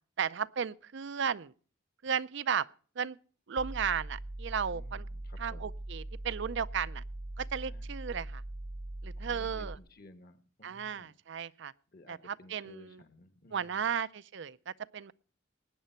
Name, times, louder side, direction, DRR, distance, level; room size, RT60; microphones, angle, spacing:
voice 1, 0.2-1.5 2.0-2.7 3.0-3.2 3.5-5.0 5.4-7.0 7.4-8.4 9.0-9.8 10.6-11.7 12.1-13.0 13.5-15.1, right 7 dB, 60° right, 0.5 m, -34 dB
sound 1, 3.6-9.8, right 1 dB, 20° right, 0.6 m, -41 dB
voice 2, 4.7-5.7 7.6-7.9 9.2-11.1 11.9-14.0, left 2 dB, 50° left, 1.3 m, -56 dB
19.5 x 9.2 x 4.4 m
head